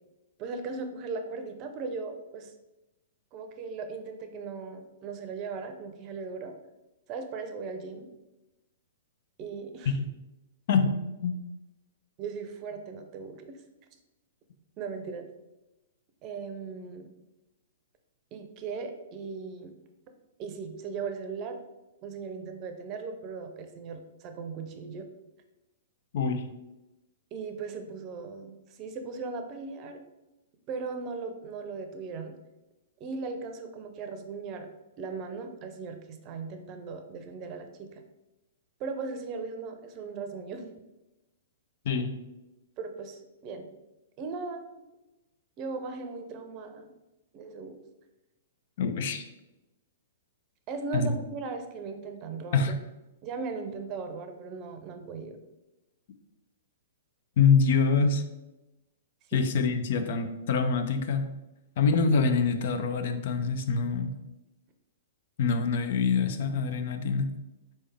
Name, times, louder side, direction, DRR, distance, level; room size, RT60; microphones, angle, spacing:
voice 1, 0.4-2.5 3.3-6.5 7.1-8.1 9.4-10.0 12.2-13.6 14.8-15.3 16.2-17.1 18.3-19.8 20.4-21.6 22.0-25.1 27.3-30.0 30.7-32.4 33.0-34.7 35.0-38.0 38.8-40.8 42.8-43.7 44.2-44.6 45.6-46.9 47.3-47.8 50.7-52.7 53.2-55.4 59.3-59.4, right 4 dB, 35° right, 6 dB, 0.6 m, -38 dB
voice 2, 10.7-11.4 26.1-26.5 41.8-42.2 48.8-49.3 50.9-51.1 52.5-52.8 57.4-58.2 59.3-61.3 61.8-64.1 65.4-67.3, left 5 dB, 60° left, 8 dB, 0.5 m, -25 dB
4.2 x 3.4 x 3.3 m, 0.99 s
hypercardioid pair, 115°, 0 cm